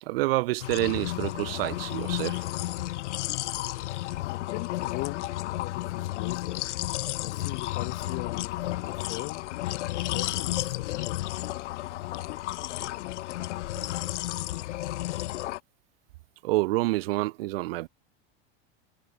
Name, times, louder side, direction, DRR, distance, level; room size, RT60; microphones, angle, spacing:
voice 1, 0.0-2.5 16.4-17.9, right 19 dB, 55° right, 0.5 m, -28 dB
sound 1, 0.6-15.6, left 16 dB, 85° left, 1.1 m, -32 dB
voice 2, 4.1-6.6 7.2-9.5 9.9-11.2, left 29 dB, 35° left, 2.7 m, -40 dB
supercardioid pair, 175°, 34 cm